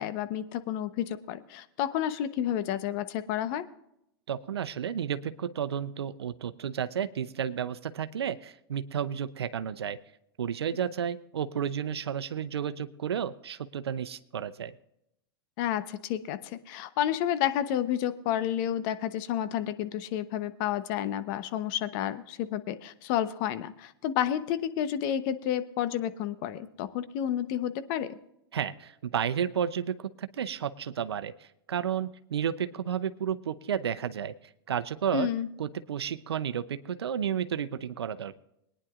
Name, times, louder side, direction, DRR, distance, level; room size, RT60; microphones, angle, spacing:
voice 1, 0.0-3.6 15.6-28.2 35.1-35.5, left 10 dB, 55° left, 12 dB, 1.0 m, -30 dB
voice 2, 4.3-10.0 10.4-14.7 28.5-34.4 34.7-35.3 35.6-38.4, right 8 dB, 85° right, 12 dB, 0.7 m, -32 dB
22.0 x 10.0 x 2.5 m, 0.79 s
hypercardioid pair, 110°, 13 cm